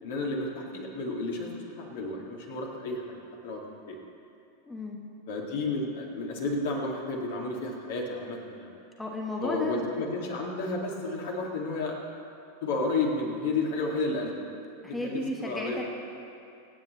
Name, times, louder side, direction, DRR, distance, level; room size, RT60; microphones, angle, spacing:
voice 1, 0.0-3.2 3.4-3.6 3.9-4.0 5.3-8.7 9.4-11.9 12.6-14.5 14.9-15.8, left 3 dB, 55° left, -1 dB, 2.3 m, -32 dB
voice 2, 4.7-5.0 9.0-9.8 14.8-15.8, left 1 dB, 10° left, -1 dB, 1.3 m, -34 dB
24.5 x 9.1 x 3.2 m, 2.6 s
figure-of-eight pair, 90°, 0 cm